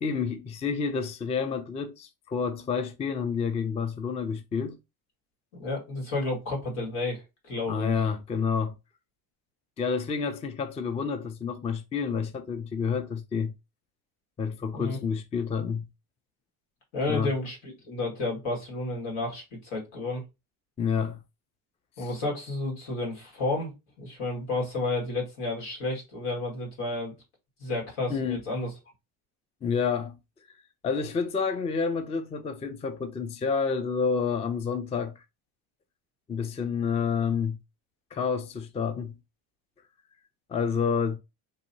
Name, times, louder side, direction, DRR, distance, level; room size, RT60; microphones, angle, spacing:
voice 1, 0.0-4.8 7.7-8.7 9.8-13.5 14.4-15.8 17.1-17.3 20.8-21.2 22.0-22.1 28.1-28.4 29.6-30.2 30.8-35.2 36.3-37.6 38.1-39.1 40.5-41.2, left 6 dB, 15° left, 0.3 m, -29 dB
voice 2, 5.6-7.9 14.7-15.0 16.9-20.2 22.0-23.7 24.0-27.1 27.6-28.7, left 2 dB, 80° left, 1.9 m, -31 dB
3.0 x 2.7 x 2.7 m
supercardioid pair, 85°, 44 cm